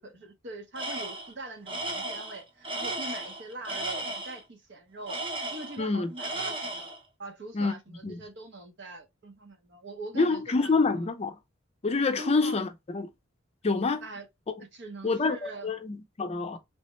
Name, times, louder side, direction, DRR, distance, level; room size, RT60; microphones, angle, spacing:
voice 1, 0.0-5.2 5.5-6.9 7.2-11.1 12.2-12.6 14.0-14.3 14.7-15.7, right 2 dB, 65° right, 0.7 m, -43 dB
Tools, 0.8-1.3 1.7-4.4 5.1-5.9 6.2-7.0, right 2 dB, 25° right, 0.8 m, -35 dB
voice 2, 5.8-6.1 7.5-7.7 8.0-8.2 10.1-11.4 11.8-13.1 13.6-14.0 15.0-16.6, left 3 dB, 30° left, 0.4 m, -27 dB
3.3 x 2.1 x 2.9 m
head